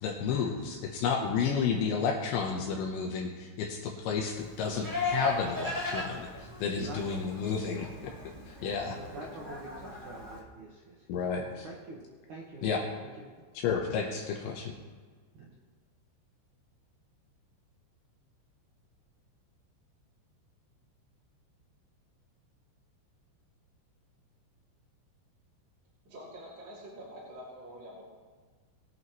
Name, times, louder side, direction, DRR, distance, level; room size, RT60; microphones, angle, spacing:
voice 1, 0.0-7.9 8.5-9.0 11.1-11.7 12.6-12.8 13.5-14.7, left 6 dB, 80° left, 1 dB, 3.1 m, -31 dB
Livestock farm animals working animals, 4.3-10.4, left 2 dB, 10° right, 2.0 m, -38 dB
voice 2, 6.7-7.8 8.6-11.1 11.6-13.3 14.0-14.1 15.3-15.6, right 2 dB, 75° right, -4 dB, 1.8 m, -46 dB
voice 3, 26.0-28.0, equal, 30° right, -6 dB, 2.6 m, -46 dB
20.0 x 8.4 x 3.1 m, 1.5 s
omnidirectional pair, 5.4 m